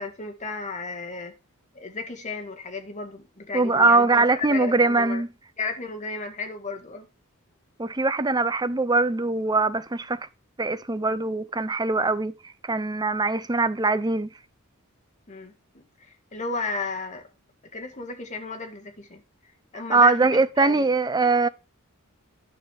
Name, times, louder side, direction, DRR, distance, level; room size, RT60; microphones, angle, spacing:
voice 1, 0.0-1.3 1.7-5.2 5.6-7.1 15.3-17.3 17.7-19.2 19.7-20.9, left 3 dB, 35° left, 1.8 m, -34 dB
voice 2, 3.5-5.3 7.8-10.2 10.6-12.3 12.6-14.3 19.9-21.5, right 3 dB, 20° right, 0.7 m, -22 dB
10.5 x 6.5 x 5.0 m
head